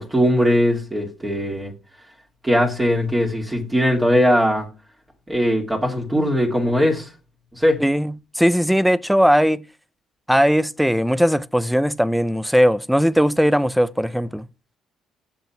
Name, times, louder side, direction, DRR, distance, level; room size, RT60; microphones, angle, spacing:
voice 1, 0.0-1.7 2.4-4.7 5.3-7.1 7.5-7.8, equal, 15° right, 2.5 m, -20 dB
voice 2, 7.8-9.6 10.3-14.5, equal, ahead, 0.5 m, -18 dB
7.2 x 5.4 x 5.8 m
hypercardioid pair, 60°, 0 cm